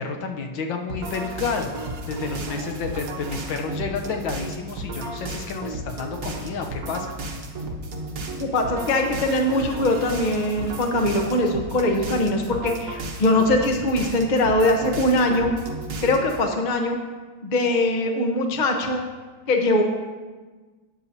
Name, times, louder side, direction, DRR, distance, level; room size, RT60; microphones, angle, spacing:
voice 1, 0.0-1.7 2.1-7.1, left 5 dB, 75° left, 3 dB, 1.5 m, -30 dB
sound 1, 0.9-16.4, right 2 dB, 50° right, 1.3 m, -33 dB
voice 2, 8.4-15.5 16.0-17.0 17.4-19.0 19.5-19.8, left 1 dB, 40° left, 3 dB, 0.6 m, -22 dB
12.0 x 9.3 x 2.7 m, 1.3 s
omnidirectional pair, 2.2 m